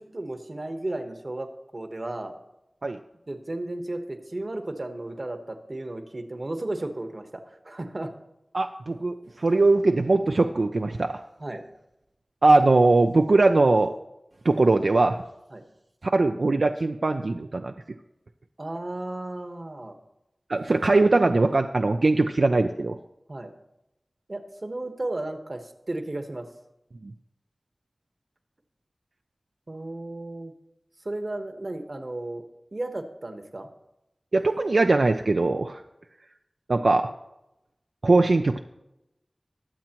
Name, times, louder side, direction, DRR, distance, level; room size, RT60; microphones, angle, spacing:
voice 1, 0.0-1.5 1.7-2.3 3.3-8.1 11.4-11.6 15.5-15.6 18.6-20.0 23.3-23.5 24.3-26.5 29.7-30.5 31.0-32.4 32.7-33.7, right 2 dB, 50° right, 6 dB, 1.2 m, -34 dB
voice 2, 8.5-11.2 12.4-13.9 14.4-15.2 16.0-17.7 20.5-23.0 27.0-27.1 34.3-35.8 36.7-37.1 38.0-38.6, right 3 dB, 80° right, 5 dB, 0.4 m, -21 dB
21.5 x 7.4 x 3.0 m, 0.91 s
wide cardioid pair, 55°, 0 cm